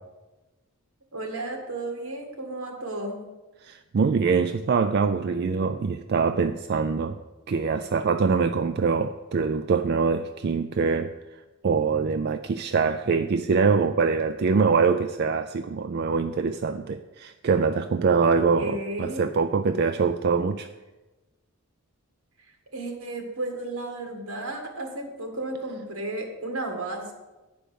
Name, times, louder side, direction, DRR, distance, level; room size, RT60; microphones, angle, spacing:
voice 1, 1.1-3.2 18.6-19.3 22.7-27.1, right 2 dB, 80° right, 3 dB, 1.9 m, -33 dB
voice 2, 3.6-7.2 7.5-11.1 11.6-20.7, right 5 dB, 45° right, 8 dB, 0.3 m, -24 dB
10.0 x 5.1 x 6.9 m, 1.1 s
head